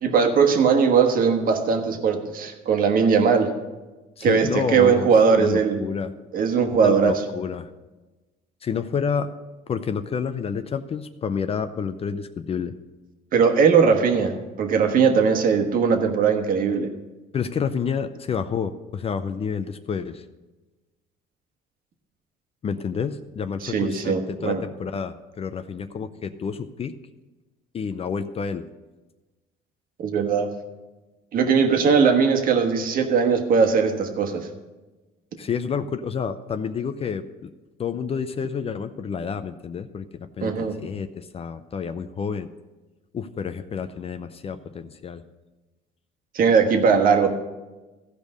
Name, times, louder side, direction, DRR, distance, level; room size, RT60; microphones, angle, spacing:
voice 1, 0.0-3.5 4.2-5.8 6.3-7.2 13.3-16.9 23.6-24.6 30.0-30.5 31.3-34.5 40.4-40.8 46.3-47.3, right 6 dB, 55° right, 5 dB, 1.4 m, -19 dB
voice 2, 4.2-6.1 6.8-7.7 8.6-9.3 9.7-12.7 17.3-20.2 22.6-26.9 27.7-28.7 35.4-37.5 37.8-40.1 40.4-42.5 43.1-45.2, left 6 dB, 35° left, 10 dB, 0.5 m, -29 dB
15.0 x 5.2 x 6.5 m, 1.2 s
cardioid pair, 110°, 17 cm